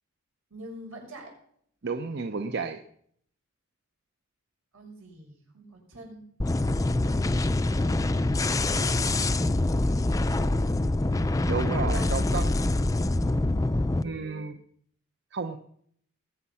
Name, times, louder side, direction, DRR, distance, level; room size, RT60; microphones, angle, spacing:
voice 1, 0.5-1.3 4.7-6.3 7.5-8.1 8.6-9.2 11.8-12.2, right 1 dB, 75° right, 0 dB, 6.2 m, -45 dB
voice 2, 1.8-2.8 11.5-12.5 13.2-13.3 14.0-14.6 15.3-15.6, right 4 dB, 55° right, 8 dB, 0.7 m, -32 dB
sound 1, 6.4-14.0, left 2 dB, 15° left, 0.4 m, -25 dB
20.5 x 8.4 x 5.7 m, 0.66 s
head